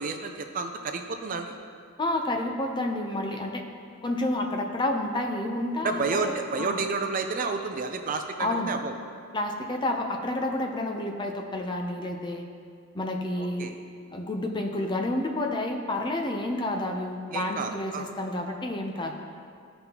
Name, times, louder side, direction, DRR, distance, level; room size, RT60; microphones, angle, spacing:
voice 1, 0.0-1.5 5.8-8.9 13.4-13.7 17.3-18.0, right 4 dB, 40° right, 5 dB, 0.5 m, -30 dB
voice 2, 2.0-3.7 4.0-6.3 6.6-6.8 8.4-8.7 9.3-12.4 12.9-13.7 14.1-19.1, left 1 dB, 25° left, 3 dB, 0.6 m, -29 dB
14.5 x 5.3 x 2.9 m, 2.2 s
head